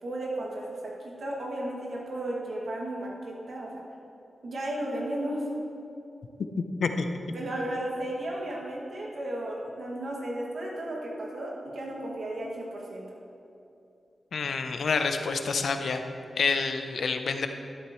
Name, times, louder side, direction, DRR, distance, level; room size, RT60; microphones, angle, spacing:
voice 1, 0.0-3.8 4.4-5.5 7.3-13.1, right 1 dB, 70° right, -3 dB, 2.3 m, -34 dB
voice 2, 14.3-16.0 16.4-17.5, left 4 dB, 80° left, 7 dB, 0.7 m, -28 dB
12.0 x 11.5 x 3.2 m, 2.7 s
wide cardioid pair, 90°, 0 cm